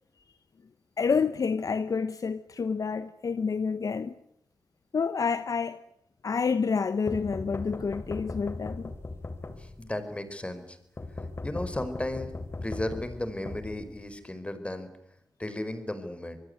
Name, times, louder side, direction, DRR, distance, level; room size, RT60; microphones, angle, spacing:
voice 1, 1.0-4.1 4.9-5.8 6.2-8.9, left 5 dB, 55° left, 1.0 m, -28 dB
sound 1, 7.1-10.0 11.0-14.3, left 2 dB, 35° left, 3.5 m, -39 dB
voice 2, 9.6-10.8 11.4-12.3 12.6-14.9 15.4-16.4, left 1 dB, 15° left, 4.9 m, -34 dB
26.0 x 20.5 x 9.6 m
cardioid pair, 65°, 7 cm